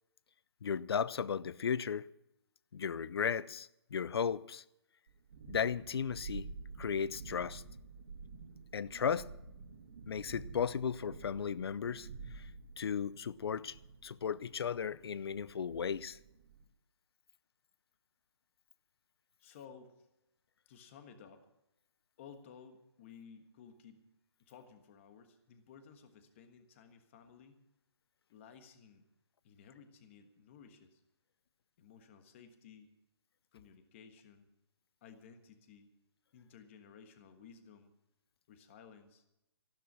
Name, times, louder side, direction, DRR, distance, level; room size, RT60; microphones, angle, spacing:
voice 1, 0.6-2.1 2.7-4.6 5.5-6.5 6.8-7.6 8.7-9.3 10.1-12.1 12.3-12.5 12.8-13.8 14.0-16.2, left 7 dB, 65° left, 0.6 m, -35 dB
Thunderstorm, 5.1-16.6, right 4 dB, 55° right, 2.4 m, -50 dB
voice 2, 19.4-20.1 20.6-21.5 22.2-24.1 24.4-27.6 28.3-29.1 29.4-31.0 31.8-32.9 33.5-34.5 35.0-35.9 36.3-37.9 38.5-39.3, left 6 dB, 30° left, 1.4 m, -56 dB
14.5 x 12.5 x 6.0 m
hypercardioid pair, 165°, 14 cm